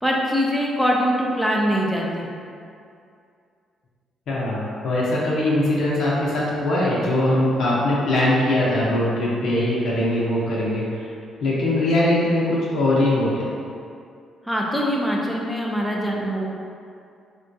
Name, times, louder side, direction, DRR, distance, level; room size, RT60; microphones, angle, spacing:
voice 1, 0.0-2.3 14.5-16.4, equal, ahead, -3 dB, 0.5 m, -23 dB
voice 2, 4.3-11.1 11.4-13.4, left 1 dB, 75° left, -7 dB, 0.6 m, -21 dB
3.6 x 2.2 x 2.6 m, 2.4 s
cardioid pair, 90°, 0 cm